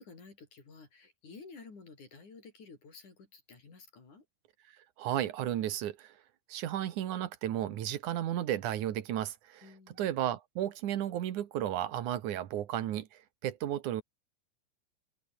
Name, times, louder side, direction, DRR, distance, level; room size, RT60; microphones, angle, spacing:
voice 1, 0.0-4.3 9.6-10.1, left 4 dB, 55° left, 7.0 m, -52 dB
voice 2, 5.0-6.1 6.5-9.7 10.0-13.1 13.4-14.0, right 11 dB, 65° right, 2.7 m, -33 dB
open air
omnidirectional pair, 4.1 m